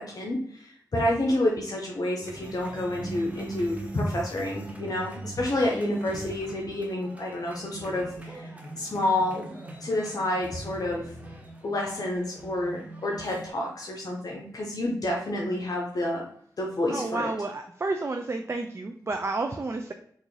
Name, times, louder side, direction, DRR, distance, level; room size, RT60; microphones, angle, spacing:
voice 1, 0.0-11.1 11.6-16.2 16.6-17.3, left 1 dB, 55° left, -2 dB, 0.7 m, -29 dB
sound 1, 2.2-13.5, right 2 dB, 20° right, 0.7 m, -41 dB
voice 2, 16.9-19.9, right 3 dB, 35° right, 5 dB, 0.3 m, -30 dB
3.6 x 2.5 x 3.1 m, 0.64 s
cardioid pair, 60°, 7 cm